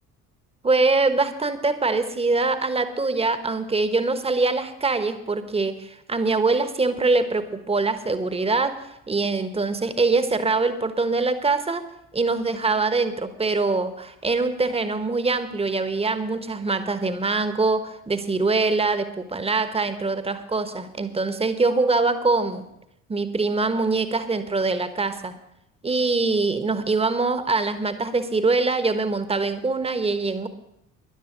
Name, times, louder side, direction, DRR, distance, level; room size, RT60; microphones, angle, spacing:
voice 1, 0.6-11.9 12.1-22.7 23.1-25.3 25.8-30.5, right 3 dB, 15° right, 11 dB, 1.2 m, -23 dB
13.0 x 11.0 x 5.1 m, 0.81 s
figure-of-eight pair, 50°, 42 cm